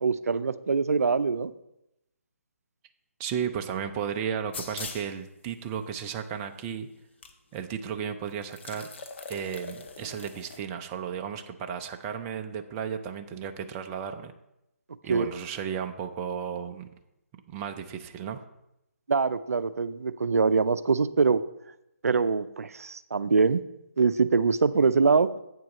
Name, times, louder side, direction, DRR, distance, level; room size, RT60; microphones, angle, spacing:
voice 1, 0.0-1.5 15.1-15.3 19.1-21.4 22.0-23.6 24.0-25.3, right 4 dB, 75° right, 13 dB, 0.5 m, -23 dB
voice 2, 3.2-6.9 7.5-8.9 9.3-14.3 15.0-16.9 17.5-18.4, right 8 dB, 20° right, 6 dB, 0.4 m, -34 dB
sound 1, 4.5-5.1 6.0-6.1 7.2-7.3 7.6-7.7 8.4-10.6, left 4 dB, 50° left, 1.0 m, -41 dB
8.1 x 4.6 x 6.3 m, 0.85 s
hypercardioid pair, 155°, 8 cm